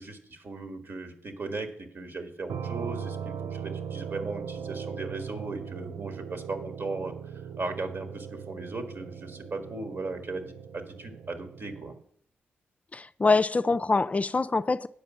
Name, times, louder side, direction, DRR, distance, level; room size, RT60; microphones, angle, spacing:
voice 1, 0.0-11.9, right 3 dB, 55° right, 1.6 m, -37 dB
sound 1, 2.5-12.0, right 7 dB, 75° right, 0.4 m, -39 dB
voice 2, 12.9-14.9, left 3 dB, 30° left, 0.3 m, -24 dB
8.8 x 5.2 x 7.0 m
cardioid pair, 55°, 5 cm